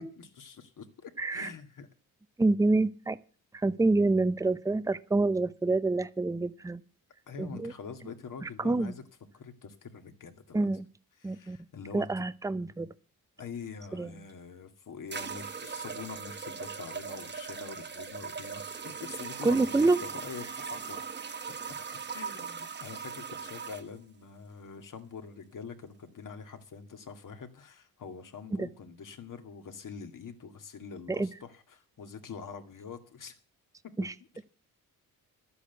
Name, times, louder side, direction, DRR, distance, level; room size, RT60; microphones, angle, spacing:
voice 1, 0.2-1.9 7.3-9.0 9.3-10.8 11.2-12.2 13.4-19.6 20.0-21.0 21.7-33.4 33.8-33.9, left 6 dB, 55° left, 6 dB, 2.2 m, -45 dB
voice 2, 1.2-1.5 2.4-3.2 3.5-6.8 7.4-7.7 8.0-8.1 8.4-9.0 10.5-10.9 11.2-11.6 11.9-12.9 13.9-14.1 19.4-20.0 20.4-20.5 28.5-28.7 31.1-31.3 34.0-34.2, right 2 dB, 10° right, 15 dB, 0.6 m, -27 dB
sound 1, 14.3-14.4 15.1-23.9, right 6 dB, 30° right, 1.0 m, -39 dB
12.0 x 8.4 x 8.0 m, 0.38 s
cardioid pair, 100°, 37 cm